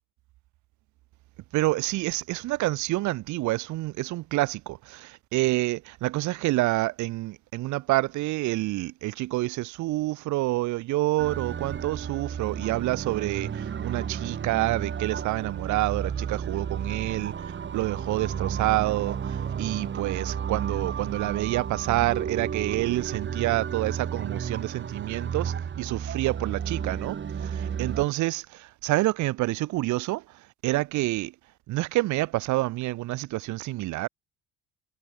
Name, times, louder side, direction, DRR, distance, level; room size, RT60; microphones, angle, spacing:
voice 1, 1.5-31.3 31.7-34.1, right 18 dB, 75° right, 2.5 m, -28 dB
sound 1, 11.2-28.1, right 7 dB, 40° right, 3.8 m, -32 dB
cardioid pair, 95°, 29 cm